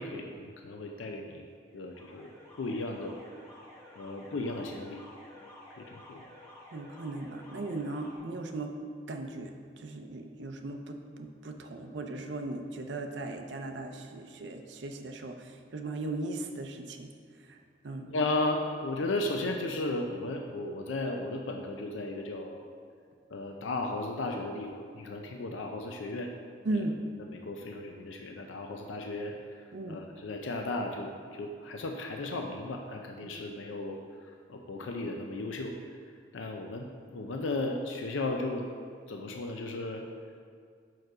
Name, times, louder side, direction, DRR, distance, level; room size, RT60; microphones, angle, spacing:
voice 1, 0.0-1.4 1.7-3.3 4.0-5.0 5.8-6.2 18.1-22.6 23.3-26.3 26.7-26.9 27.3-35.7 36.3-38.7 39.1-40.0, left 2 dB, 85° left, 3 dB, 0.5 m, -35 dB
Alarm, 1.7-8.2, left 1 dB, 15° left, 1.8 m, -52 dB
voice 2, 6.7-8.7 9.1-17.1 17.5-17.6 17.8-18.1 26.6-27.0 29.7-30.0 33.2-33.4, right 2 dB, 70° right, 4 dB, 0.5 m, -37 dB
6.3 x 4.6 x 4.7 m, 2.2 s
head